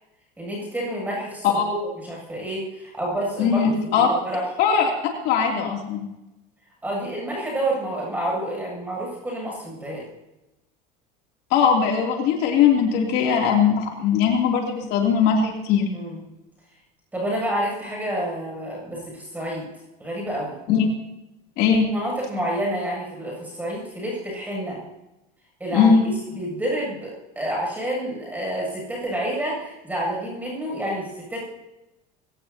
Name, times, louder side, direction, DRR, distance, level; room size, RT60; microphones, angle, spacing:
voice 1, 0.4-4.4 6.8-10.1 15.9-16.2 17.1-19.7 20.0-20.6 21.9-24.8 25.6-26.0 26.3-31.4, right 1 dB, 10° right, -2 dB, 7.6 m, -29 dB
voice 2, 3.4-4.1 4.6-4.9 5.2-6.1 11.5-15.9 20.7-20.9 21.6-21.9 25.7-26.0, left 7 dB, 60° left, 0 dB, 3.0 m, -20 dB
22.0 x 17.0 x 2.9 m, 0.96 s
cardioid pair, 135°, 19 cm